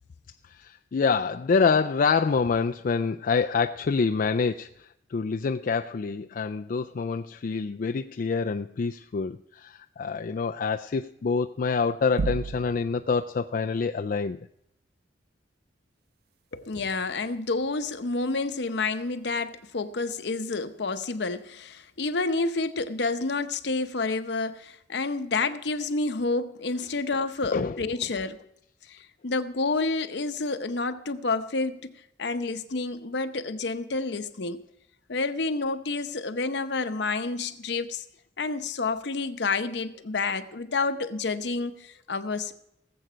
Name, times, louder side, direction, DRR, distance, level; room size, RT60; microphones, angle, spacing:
voice 1, 0.4-14.4 27.5-27.8, left 5 dB, 50° left, 0.4 m, -26 dB
sound 1, 12.2-13.1, right 4 dB, 55° right, 0.4 m, -31 dB
voice 2, 16.5-28.4 28.9-31.9 32.2-34.6 35.1-38.0 38.4-42.5, left 3 dB, 65° left, 0.8 m, -29 dB
18.5 x 7.9 x 5.0 m
head